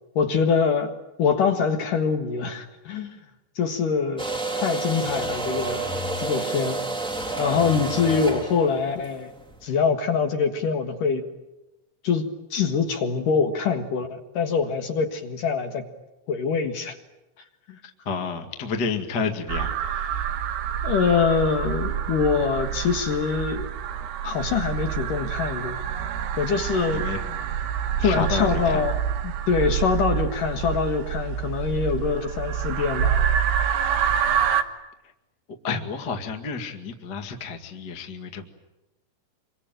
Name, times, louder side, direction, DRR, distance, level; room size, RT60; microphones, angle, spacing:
voice 1, 0.2-0.9 1.2-3.2 3.6-4.3 4.6-5.8 6.2-6.8 7.4-9.3 9.6-11.3 12.0-15.9 16.3-16.9 17.7-17.8 20.8-23.7 24.2-25.8 26.4-27.0 28.0-33.2, left 5 dB, 60° left, 6 dB, 2.9 m, -24 dB
sound 1, 4.2-9.6, right 2 dB, ahead, 1.9 m, -29 dB
voice 2, 18.0-20.3 26.9-27.5 28.0-28.9 35.6-38.5, left 5 dB, 40° left, 5 dB, 1.6 m, -30 dB
sound 2, 19.5-34.6, right 9 dB, 75° right, 3.4 m, -27 dB
26.5 x 24.0 x 9.1 m, 0.99 s
omnidirectional pair, 5.1 m